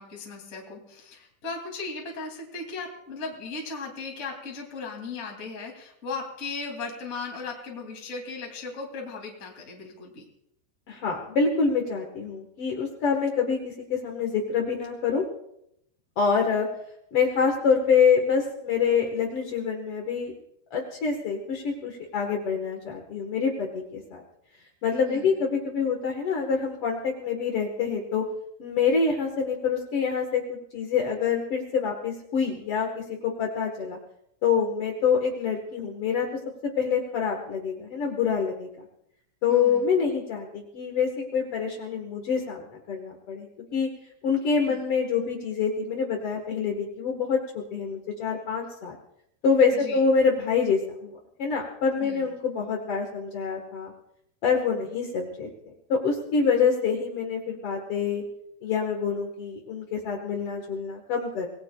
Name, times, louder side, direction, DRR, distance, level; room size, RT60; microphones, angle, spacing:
voice 1, 0.0-10.3 25.0-25.4 39.5-39.9 44.7-44.8 49.7-50.0 52.0-52.3, left 4 dB, 20° left, 0 dB, 2.2 m, -37 dB
voice 2, 10.9-15.2 16.2-16.7 17.1-20.3 20.7-24.2 24.8-28.2 28.6-34.0 34.4-36.3 36.8-38.8 39.4-43.9 44.2-49.0 49.4-51.1 51.4-53.9 54.4-55.5 55.9-58.2 58.6-61.5, left 5 dB, 70° left, 1 dB, 1.4 m, -26 dB
26.0 x 18.5 x 2.3 m, 0.77 s
omnidirectional pair, 5.0 m